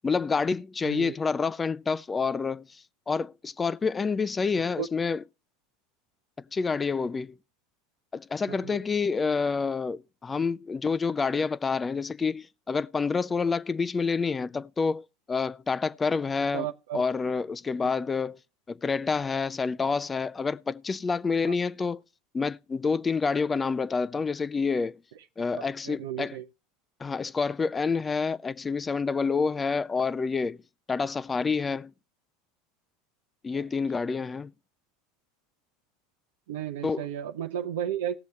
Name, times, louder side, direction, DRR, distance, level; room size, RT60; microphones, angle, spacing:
voice 1, 0.0-5.2 6.5-7.3 8.1-16.7 16.9-18.4 18.7-22.0 22.3-25.0 25.4-26.4 27.0-30.6 30.9-31.9 33.4-34.5 36.8-37.1, left 5 dB, 20° left, 0.5 m, -28 dB
voice 2, 0.8-1.2 4.8-4.9 8.5-8.8 16.5-17.0 17.8-17.9 21.4-21.5 25.6-26.5 33.5-33.7 36.5-38.2, right 10 dB, 80° right, 0.7 m, -34 dB
18.0 x 6.9 x 3.2 m
hypercardioid pair, 100°, 0 cm